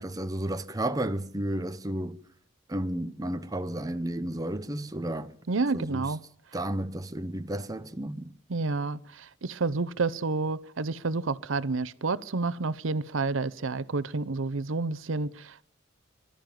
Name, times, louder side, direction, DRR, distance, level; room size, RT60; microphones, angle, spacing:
voice 1, 0.0-2.2 2.7-5.3 5.7-6.0 6.5-8.4, right 1 dB, 20° right, 0.8 m, -32 dB
voice 2, 5.5-6.2 8.5-15.6, right 3 dB, 85° right, 0.8 m, -29 dB
25.0 x 12.5 x 9.2 m
head